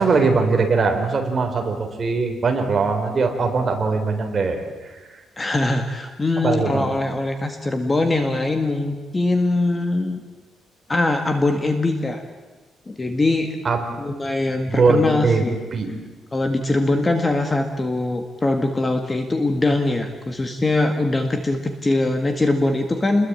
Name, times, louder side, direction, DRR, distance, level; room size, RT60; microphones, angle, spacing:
voice 1, 0.0-4.6 6.4-7.0 13.6-13.8 14.7-15.4 15.7-15.9, right 4 dB, 30° right, 3 dB, 4.1 m, -20 dB
voice 2, 5.4-10.2 10.9-12.2 12.9-13.6 14.0-15.6 16.3-23.3, left 2 dB, 15° left, 6 dB, 1.8 m, -22 dB
29.0 x 21.5 x 9.0 m, 1.3 s
cardioid pair, 170°, 0 cm